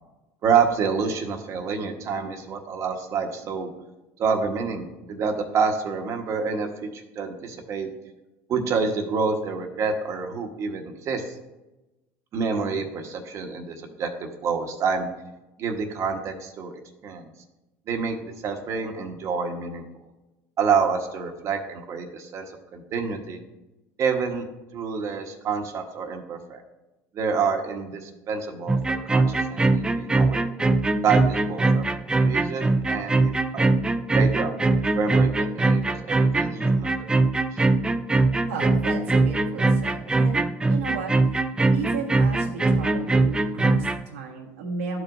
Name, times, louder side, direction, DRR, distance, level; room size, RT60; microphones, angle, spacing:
voice 1, 0.4-3.7 4.2-7.9 8.5-11.4 12.3-15.1 15.6-16.7 17.0-17.3 17.9-19.8 20.6-22.5 22.7-23.4 24.0-24.4 24.7-26.6 27.1-30.4 31.0-31.8 32.2-33.7 34.1-34.6 34.9-37.6, right 5 dB, 45° right, 3 dB, 1.2 m, -28 dB
sound 1, 28.7-44.0, right 3 dB, 10° right, 0.4 m, -22 dB
voice 2, 38.5-41.1 41.7-45.0, right 4 dB, 90° right, -2 dB, 1.4 m, -34 dB
12.5 x 4.8 x 2.6 m, 1.0 s
supercardioid pair, 100°, 7 cm